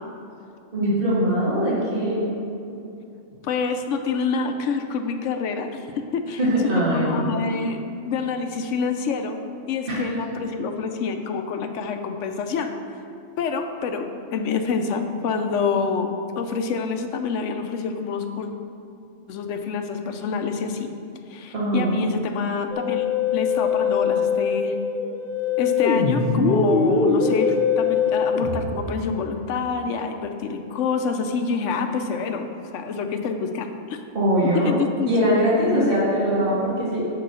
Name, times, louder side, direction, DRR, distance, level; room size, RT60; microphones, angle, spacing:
voice 1, 0.7-2.3 6.4-7.3 9.9-10.0 21.5-21.9 34.1-34.8 35.1-37.1, equal, 50° right, -7 dB, 1.9 m, -21 dB
voice 2, 3.4-7.8 8.1-9.4 9.7-12.7 13.4-14.0 14.3-16.1 16.3-18.5 19.3-20.9 21.3-24.7 25.6-34.0 34.5-35.2 35.7-36.0, left 5 dB, 90° left, 6 dB, 1.0 m, -27 dB
Musical instrument, 22.7-28.7, left 5 dB, 55° left, 0.9 m, -22 dB
6.7 x 4.9 x 6.2 m, 2.6 s
omnidirectional pair, 1.2 m